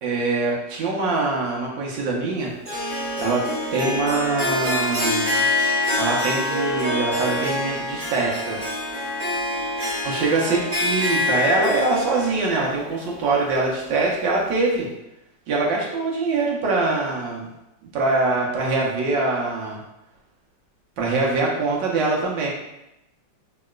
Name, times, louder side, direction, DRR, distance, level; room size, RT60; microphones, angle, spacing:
voice 1, 0.0-2.5 3.2-3.4 3.7-5.5 6.0-8.6 10.0-14.9 15.5-17.5 17.9-19.8 21.0-22.5, right 3 dB, 80° right, -2 dB, 1.3 m, -23 dB
Harp, 2.6-13.9, left 1 dB, 30° right, 0.7 m, -26 dB
3.0 x 2.8 x 2.3 m, 0.91 s
omnidirectional pair, 2.0 m